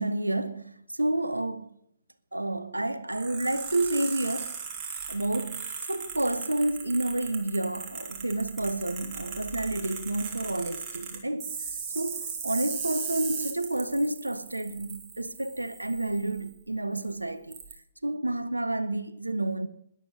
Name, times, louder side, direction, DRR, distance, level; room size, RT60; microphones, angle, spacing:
voice 1, 0.0-1.7 2.3-4.6 5.1-17.6 18.0-19.7, right 1 dB, 85° right, 0.9 m, -30 dB
sound 1, 3.1-16.5 17.0-17.1 17.5-17.7, right 6 dB, 30° right, 3.3 m, -38 dB
13.0 x 11.0 x 6.1 m
figure-of-eight pair, 120°, 0 cm